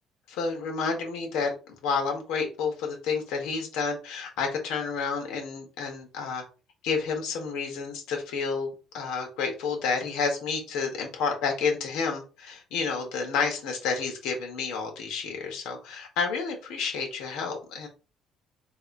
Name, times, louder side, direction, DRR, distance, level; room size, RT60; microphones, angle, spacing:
voice 1, 0.3-6.4 6.8-8.7 8.9-17.9, left 5 dB, 80° left, 2 dB, 1.5 m, -30 dB
3.4 x 2.7 x 4.6 m, 0.33 s
cardioid pair, 160°, 0 cm